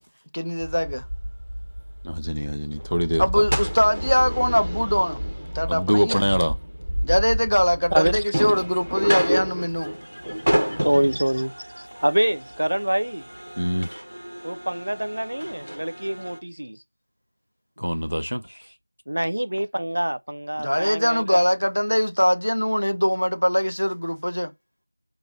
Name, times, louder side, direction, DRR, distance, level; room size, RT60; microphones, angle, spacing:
voice 1, 0.3-1.1 3.2-5.2 5.5-6.2 7.0-9.9 20.6-24.5, equal, 65° left, 0.7 m, -22 dB
sound 1, 0.6-16.4, equal, 65° right, 1.1 m, -30 dB
voice 2, 2.0-3.4 5.7-6.5 10.1-10.2 10.7-10.8 13.6-13.9 17.8-18.7, equal, 85° right, 0.7 m, -24 dB
voice 3, 10.8-13.3 14.4-16.8 19.1-21.2, right 1 dB, 45° right, 0.3 m, -25 dB
3.9 x 2.9 x 3.7 m
figure-of-eight pair, 175°, 0 cm